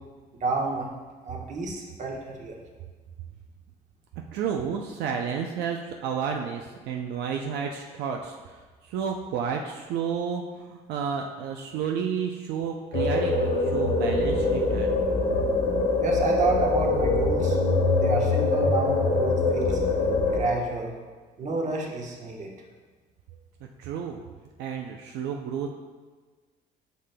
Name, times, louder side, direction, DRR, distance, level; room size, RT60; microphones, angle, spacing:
voice 1, 0.4-0.9 1.2-2.6 16.0-17.6 18.0-19.8 20.2-20.9 21.4-22.5, right 3 dB, 45° right, 0 dB, 1.2 m, -30 dB
voice 2, 4.3-15.0 23.8-24.2 24.6-25.8, right 7 dB, 80° right, 2 dB, 0.5 m, -31 dB
sound 1, 12.9-20.4, left 3 dB, 65° left, 1.3 m, -23 dB
8.3 x 5.8 x 2.2 m, 1.4 s
cardioid pair, 110°, 17 cm